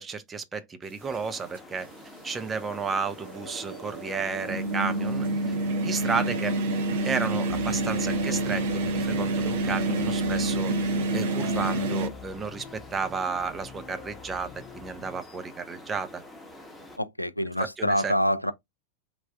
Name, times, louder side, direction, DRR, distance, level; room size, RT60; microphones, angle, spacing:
voice 1, 0.0-1.9 2.2-5.6 5.8-6.6 7.0-10.7 11.1-16.2 17.8-18.1, right 5 dB, 20° right, 0.5 m, -32 dB
sound 1, 1.0-17.0, left 1 dB, 5° left, 0.9 m, -47 dB
sound 2, 1.1-1.2 2.3-12.1, right 2 dB, 55° right, 0.7 m, -28 dB
sound 3, 7.5-15.2, left 6 dB, 35° left, 0.6 m, -45 dB
voice 2, 17.0-18.5, equal, 90° left, 0.3 m, -26 dB
3.5 x 2.3 x 3.3 m
figure-of-eight pair, 90°, 0 cm